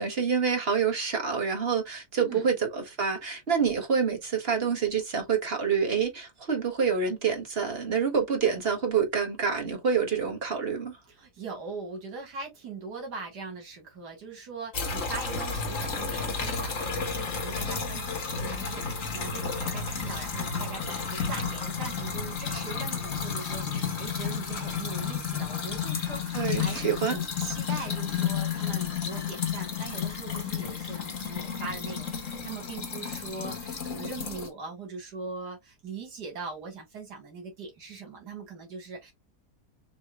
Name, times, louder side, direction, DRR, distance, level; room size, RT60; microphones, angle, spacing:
voice 1, 0.0-11.0 26.3-27.1, right 6 dB, 40° right, 1.5 m, -27 dB
voice 2, 2.2-2.5 11.1-39.1, right 4 dB, 80° right, 2.4 m, -41 dB
sound 1, 14.7-34.5, left 6 dB, 50° left, 1.6 m, -32 dB
6.1 x 3.0 x 2.3 m
omnidirectional pair, 1.7 m